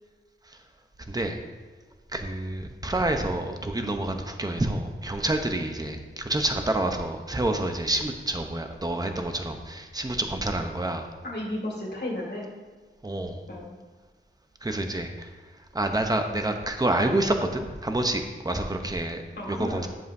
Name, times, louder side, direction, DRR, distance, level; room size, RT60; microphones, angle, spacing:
voice 1, 1.1-1.4 2.1-11.1 13.0-13.4 14.6-15.3 15.7-19.2 19.5-19.9, right 1 dB, 20° right, 5 dB, 0.9 m, -28 dB
voice 2, 11.2-12.5 13.5-13.7 19.4-19.9, left 1 dB, 55° left, -3 dB, 2.3 m, -33 dB
10.5 x 7.3 x 2.8 m, 1.4 s
wide cardioid pair, 55°, 21 cm